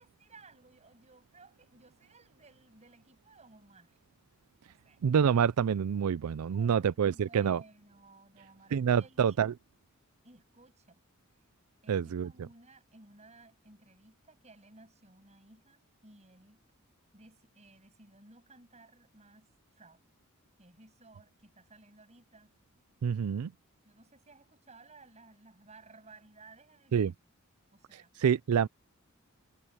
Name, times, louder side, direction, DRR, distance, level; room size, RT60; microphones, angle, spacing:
voice 1, 0.0-4.0 4.7-5.0 6.4-9.5 10.2-11.0 11.8-16.6 17.1-19.5 19.8-20.0 20.6-22.5 23.8-27.1 27.7-28.1, right 3 dB, 30° right, 7.4 m, -58 dB
voice 2, 5.0-7.6 8.7-9.5 11.9-12.3 23.0-23.5 26.9-27.1 28.2-28.7, right 7 dB, 85° right, 0.4 m, -27 dB
head